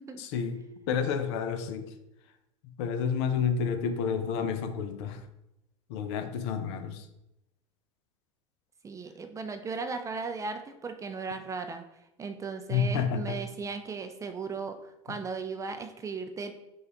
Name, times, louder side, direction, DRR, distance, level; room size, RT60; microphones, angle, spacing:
voice 1, 0.2-1.9 2.6-5.2 5.9-7.1 12.7-13.4, left 6 dB, 55° left, 10 dB, 0.5 m, -30 dB
voice 2, 8.8-11.8 12.2-16.5, right 4 dB, 20° right, 7 dB, 0.4 m, -36 dB
6.2 x 2.4 x 2.9 m, 0.87 s
figure-of-eight pair, 75°, 17 cm